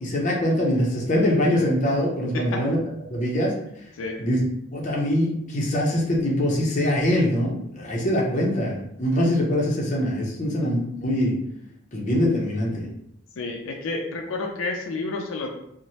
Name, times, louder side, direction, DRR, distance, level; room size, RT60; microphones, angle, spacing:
voice 1, 0.0-2.8 3.1-3.5 4.2-4.4 4.7-11.4 11.9-12.9, left 1 dB, 35° left, -2 dB, 0.6 m, -23 dB
voice 2, 2.3-2.7 4.0-4.2 13.4-15.5, left 3 dB, 80° left, 2 dB, 0.4 m, -30 dB
3.0 x 2.1 x 2.7 m, 0.78 s
head